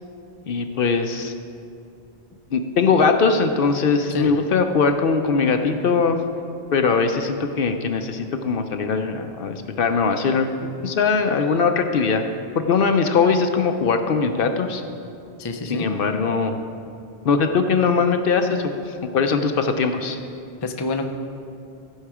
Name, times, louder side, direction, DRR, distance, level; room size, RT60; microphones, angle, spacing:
voice 1, 0.5-1.3 2.5-6.2 6.7-12.2 12.5-14.8 15.7-16.6 17.2-20.2, left 5 dB, 60° left, 6 dB, 0.8 m, -21 dB
voice 2, 15.4-15.9 20.6-21.1, left 3 dB, 30° left, 5 dB, 0.5 m, -27 dB
15.0 x 5.6 x 4.8 m, 2.6 s
omnidirectional pair, 1.1 m